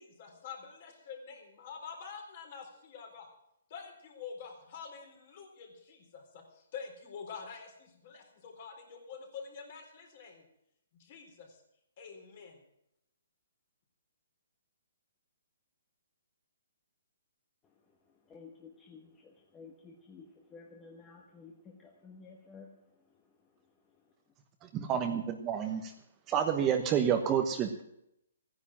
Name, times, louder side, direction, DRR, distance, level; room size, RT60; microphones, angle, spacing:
voice 1, 0.0-3.3 3.7-10.4 11.0-11.6 12.0-12.6, left 6 dB, 45° left, 3 dB, 4.2 m, -47 dB
voice 2, 18.3-22.7, left 4 dB, 15° left, 0 dB, 1.4 m, -53 dB
voice 3, 24.6-25.9 26.3-27.8, right 8 dB, 20° right, 5 dB, 1.1 m, -29 dB
15.0 x 10.5 x 7.4 m, 0.78 s
hypercardioid pair, 160°, 0 cm